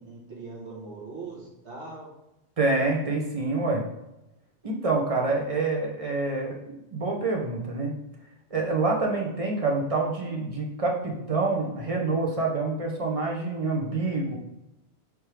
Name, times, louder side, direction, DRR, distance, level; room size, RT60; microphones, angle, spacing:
voice 1, 0.0-2.1, right 3 dB, 85° right, -4 dB, 1.6 m, -40 dB
voice 2, 2.6-3.8 4.6-7.9 8.5-14.4, right 3 dB, 35° right, 0 dB, 0.7 m, -27 dB
4.4 x 3.5 x 3.3 m, 0.90 s
omnidirectional pair, 1.1 m